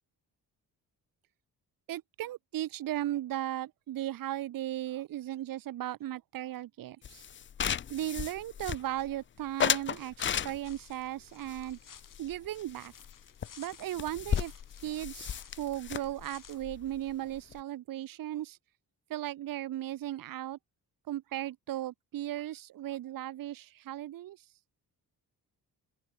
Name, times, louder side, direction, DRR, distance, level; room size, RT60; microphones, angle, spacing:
voice 1, 1.9-7.2 7.9-11.8 12.2-12.9 13.6-14.5 14.8-18.6 19.1-20.6 21.1-24.4, right 13 dB, 55° right, 0.6 m, -36 dB
sound 1, 7.0-9.1 9.6-10.9 11.5-12.7 13.0-13.1 13.4-13.5 13.7-17.6, left 8 dB, 30° left, 0.4 m, -34 dB
sound 2, 10.6-16.6, left 7 dB, 50° left, 6.1 m, -55 dB
open air
wide cardioid pair, 140°, 40 cm